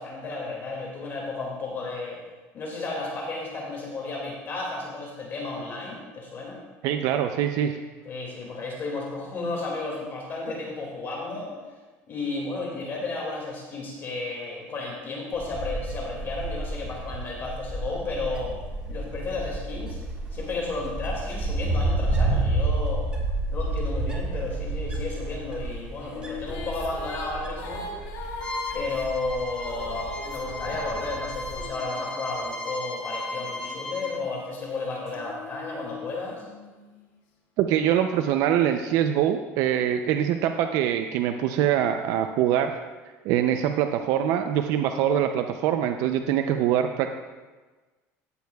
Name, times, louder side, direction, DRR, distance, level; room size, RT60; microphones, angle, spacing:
voice 1, 0.0-2.2 2.5-6.6 8.0-11.5 12.1-18.6 18.9-20.0 20.3-23.0 23.5-27.9 28.7-36.5, left 3 dB, 35° left, -2 dB, 2.2 m, -33 dB
voice 2, 6.8-7.8 37.6-42.7 43.2-47.1, right 10 dB, 65° right, 6 dB, 0.5 m, -24 dB
Wind, 15.3-31.6, right 2 dB, 15° right, 1.5 m, -30 dB
sound 1, 25.7-32.7 33.3-37.0, left 2 dB, 80° left, 2.0 m, -41 dB
Bowed string instrument, 28.4-34.2, left 2 dB, 15° left, 2.4 m, -35 dB
15.0 x 8.1 x 2.3 m, 1.3 s
cardioid pair, 135°, 6 cm